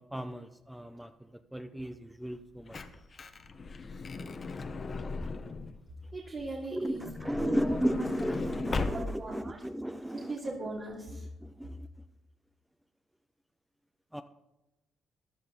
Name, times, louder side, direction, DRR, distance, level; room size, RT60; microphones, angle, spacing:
voice 1, 0.0-2.8 5.2-5.5 6.7-10.4 11.4-11.9 14.1-14.2, equal, 5° right, 9 dB, 0.7 m, -35 dB
Truck / Door, 2.3-5.8 6.9-9.4 10.1-10.2 10.4-10.5, left 4 dB, 40° left, 1.1 m, -37 dB
voice 2, 6.1-7.8 8.9-9.6 10.1-11.3, right 2 dB, 45° right, -4 dB, 2.7 m, -39 dB
15.0 x 11.0 x 4.0 m, 0.97 s
cardioid pair, 75°, 0 cm